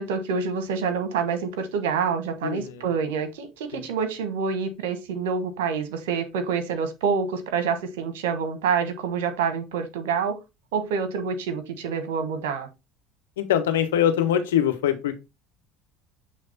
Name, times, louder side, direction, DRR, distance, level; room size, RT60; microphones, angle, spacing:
voice 1, 0.0-10.3 10.7-12.7, right 6 dB, 85° right, 1.2 m, -27 dB
voice 2, 13.4-15.2, left 10 dB, 90° left, 1.0 m, -23 dB
7.5 x 3.4 x 4.1 m
hypercardioid pair, 80°, 0 cm